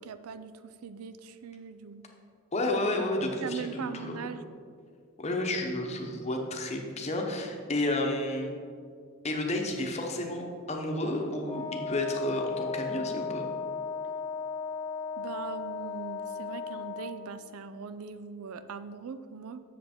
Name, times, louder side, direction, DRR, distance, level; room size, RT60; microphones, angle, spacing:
voice 1, 0.0-2.0 3.4-4.4 15.2-19.6, right 5 dB, 90° right, 12 dB, 0.4 m, -41 dB
voice 2, 2.5-4.1 5.2-8.5 9.2-13.5, left 1 dB, 30° left, 2 dB, 0.9 m, -31 dB
Wind instrument woodwind instrument, 11.5-17.2, left 5 dB, 15° left, 0.4 m, -35 dB
7.6 x 6.8 x 4.4 m, 2.3 s
head